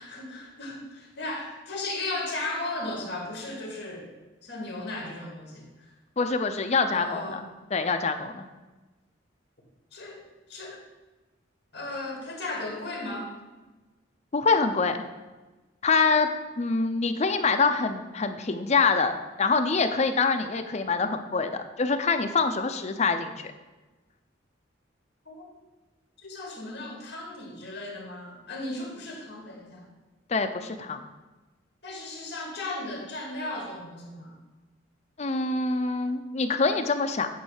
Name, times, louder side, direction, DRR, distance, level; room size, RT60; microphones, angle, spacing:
voice 1, 0.0-4.1 4.4-5.9 6.9-7.4 9.9-10.2 10.5-10.8 11.7-13.3 25.3-25.5 26.2-29.9 31.8-34.4, left 2 dB, 60° left, -1 dB, 2.1 m, -36 dB
voice 2, 6.2-7.4 7.7-8.4 14.3-15.0 15.8-16.3 16.6-19.1 19.4-23.3 30.3-31.0 35.2-37.3, left 4 dB, 35° left, 7 dB, 0.5 m, -25 dB
9.2 x 3.2 x 6.4 m, 1.2 s
head